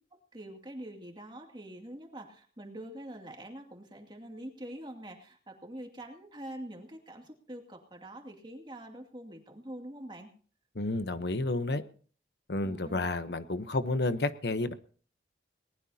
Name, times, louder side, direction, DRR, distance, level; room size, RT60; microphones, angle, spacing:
voice 1, 0.1-10.3 12.6-13.1, right 1 dB, 25° right, 2 dB, 2.4 m, -45 dB
voice 2, 10.7-11.8 12.5-14.7, left 2 dB, 65° left, 11 dB, 0.9 m, -31 dB
20.0 x 19.0 x 2.8 m, 0.43 s
head